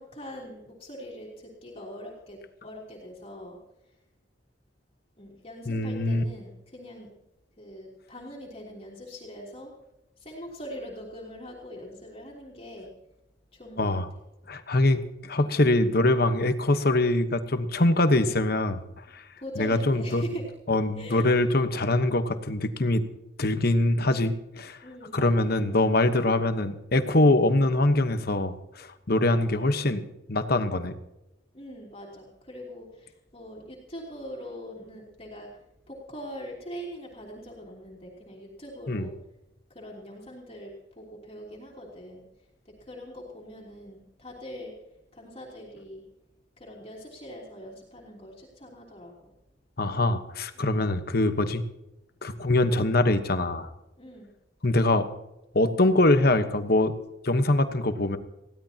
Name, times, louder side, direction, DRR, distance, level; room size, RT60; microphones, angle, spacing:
voice 1, 0.0-3.6 5.2-7.1 7.6-9.7 10.2-12.9 13.5-14.0 15.5-15.8 19.4-20.4 21.0-21.3 24.8-25.9 31.5-35.5 35.9-39.1 39.7-42.2 42.6-44.7 45.1-46.0 46.6-49.3 50.6-50.9 54.0-54.3, equal, 30° left, -3 dB, 3.1 m, -42 dB
voice 2, 5.7-6.2 13.8-14.1 14.5-18.8 19.1-19.2 19.6-20.2 20.7-23.0 23.4-24.8 25.1-31.0 38.9-39.1 49.8-51.6 52.2-53.7 54.6-55.1 55.5-57.0 57.2-58.2, left 2 dB, 55° left, 10 dB, 1.1 m, -23 dB
21.0 x 16.0 x 2.9 m, 0.93 s
head